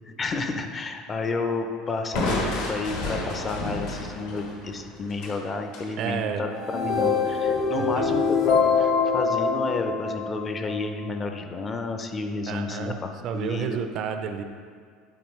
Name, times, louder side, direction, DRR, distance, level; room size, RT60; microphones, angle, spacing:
voice 1, 0.2-13.8, left 3 dB, 20° left, 5 dB, 0.4 m, -31 dB
Crushing, 2.1-5.9, left 2 dB, 75° left, 1.3 m, -31 dB
voice 2, 6.0-6.5 7.8-8.0 12.5-14.4, right 7 dB, 40° right, 6 dB, 0.4 m, -31 dB
sound 1, 6.5-10.8, left 5 dB, 45° left, 0.7 m, -24 dB
9.3 x 4.2 x 3.1 m, 2.2 s
cardioid pair, 165°, 0 cm